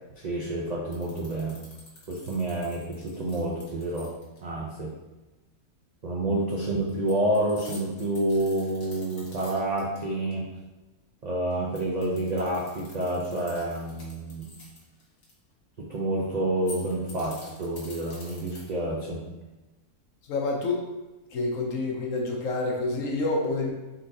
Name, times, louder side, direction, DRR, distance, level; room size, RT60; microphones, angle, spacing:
voice 1, 0.2-1.6 2.1-4.1 4.4-4.9 6.0-10.4 11.2-14.5 15.8-19.2, right 1 dB, 80° right, -4 dB, 0.3 m, -28 dB
sound 1, 0.9-4.4 6.9-10.0 10.3-10.4 11.5-15.3 16.5-18.9, left 2 dB, 45° left, 1.2 m, -48 dB
voice 2, 20.3-20.9 21.3-23.7, left 2 dB, 65° left, 0 dB, 1.0 m, -28 dB
4.1 x 3.6 x 2.7 m, 1.1 s
omnidirectional pair, 1.6 m